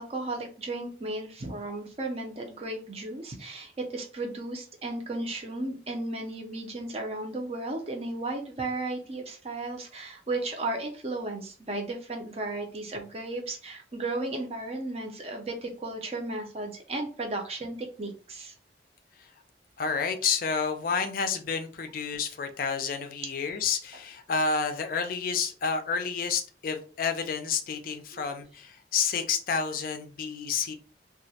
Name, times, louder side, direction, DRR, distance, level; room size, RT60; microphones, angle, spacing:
voice 1, 0.0-18.5 28.1-28.2, right 2 dB, 35° right, 2 dB, 0.5 m, -34 dB
voice 2, 19.8-30.7, left 5 dB, 50° left, 6 dB, 0.3 m, -30 dB
2.2 x 2.0 x 2.7 m, 0.38 s
head